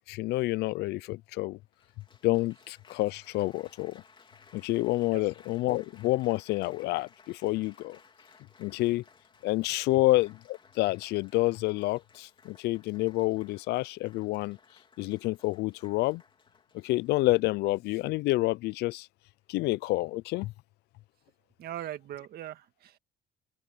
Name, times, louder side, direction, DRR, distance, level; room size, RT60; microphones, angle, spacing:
voice 1, 0.1-1.6 2.2-4.0 4.5-8.0 8.6-9.0 9.4-14.6 15.0-16.2 16.8-19.1 19.5-20.5, left 19 dB, 80° left, 0.5 m, -28 dB
Applause, 1.7-17.6 18.4-18.7, left 5 dB, 30° left, 3.7 m, -60 dB
voice 2, 21.6-23.0, right 12 dB, 65° right, 1.8 m, -40 dB
cardioid pair, 110°, 17 cm